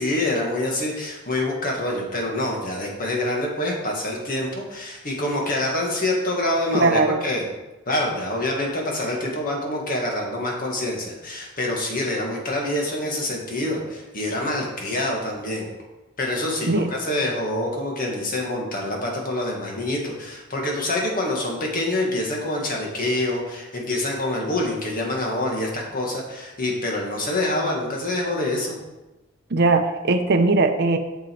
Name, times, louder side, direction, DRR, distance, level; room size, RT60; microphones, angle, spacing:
voice 1, 0.0-7.4 7.9-15.7 16.2-28.8, left 1 dB, 45° left, -1 dB, 1.9 m, -26 dB
voice 2, 6.7-7.2 16.7-16.9 29.5-31.0, right 3 dB, 55° right, 6 dB, 0.7 m, -19 dB
7.7 x 6.5 x 4.6 m, 1.1 s
head